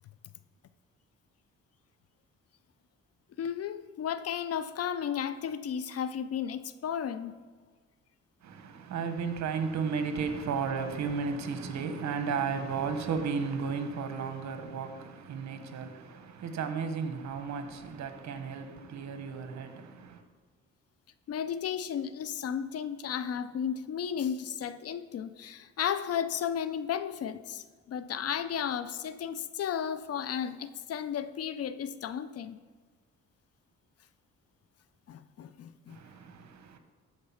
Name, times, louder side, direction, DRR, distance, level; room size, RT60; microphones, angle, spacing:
voice 1, 3.4-7.4 21.3-32.6 35.1-36.0, left 8 dB, 55° left, 0.6 m, -34 dB
voice 2, 8.4-20.2 35.9-36.8, right 5 dB, 65° right, 1.2 m, -34 dB
13.0 x 4.6 x 5.7 m
cardioid pair, 90°, 30 cm